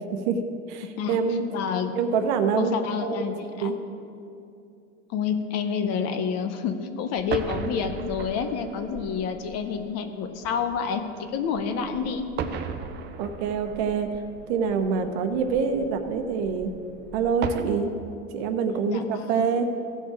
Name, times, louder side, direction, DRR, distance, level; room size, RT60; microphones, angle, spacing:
voice 1, 0.7-1.4 1.9-2.8 3.0-3.2 3.6-3.8 13.2-14.1 14.5-16.7 17.1-17.9 18.3-19.7, right 5 dB, 65° right, 6 dB, 1.1 m, -25 dB
voice 2, 1.5-1.9 2.6-3.7 5.1-12.2 18.8-19.5, left 6 dB, 45° left, 8 dB, 0.9 m, -29 dB
sound 1, 7.2-17.6, right 7 dB, 30° right, 0.6 m, -37 dB
16.0 x 5.6 x 4.8 m, 2.6 s
supercardioid pair, 125°, 36 cm